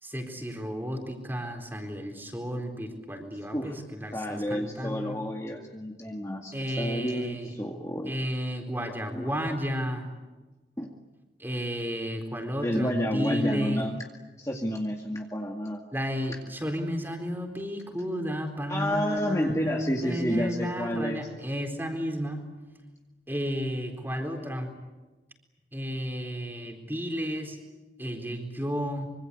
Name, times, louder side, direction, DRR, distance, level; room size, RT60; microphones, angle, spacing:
voice 1, 0.0-5.2 6.5-7.5 8.1-10.1 11.4-13.8 15.9-22.4 23.3-24.7 25.7-27.6 28.0-29.1, equal, 10° right, 4 dB, 4.1 m, -32 dB
voice 2, 4.1-8.1 9.1-9.6 10.8-10.9 12.6-14.0 14.4-15.8 18.7-21.3, equal, 15° left, 0 dB, 2.1 m, -30 dB
25.5 x 25.0 x 8.3 m, 1.2 s
head